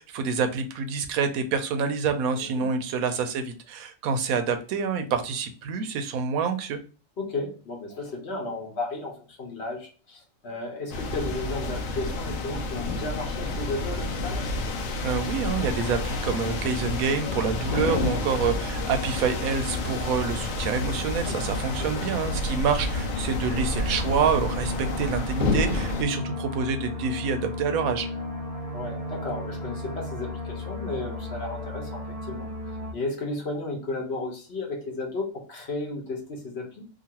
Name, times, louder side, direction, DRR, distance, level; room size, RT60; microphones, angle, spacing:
voice 1, 0.0-6.8 15.0-28.1, right 5 dB, 90° right, 7 dB, 1.0 m, -27 dB
voice 2, 7.2-14.4 17.6-17.9 21.2-21.5 21.8-22.1 28.7-32.5 32.9-36.8, left 2 dB, 55° left, 0 dB, 1.0 m, -34 dB
sound 1, 10.9-26.0, left 2 dB, 75° left, 0.9 m, -29 dB
sound 2, 14.9-32.9, left 1 dB, 60° right, 0.3 m, -37 dB
2.9 x 2.4 x 2.8 m, 0.37 s
omnidirectional pair, 1.4 m